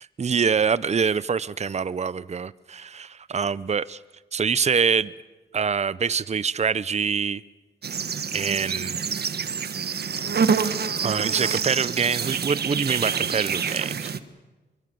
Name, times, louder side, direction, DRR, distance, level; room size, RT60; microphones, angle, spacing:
voice 1, 0.0-4.0 4.3-5.1 5.5-7.4 8.3-9.0 11.0-14.1, right 6 dB, 35° right, 18 dB, 0.7 m, -25 dB
sound 1, 7.8-14.2, right 6 dB, 60° right, 1.5 m, -27 dB
25.0 x 23.5 x 7.9 m, 1.2 s
cardioid pair, 65°, 18 cm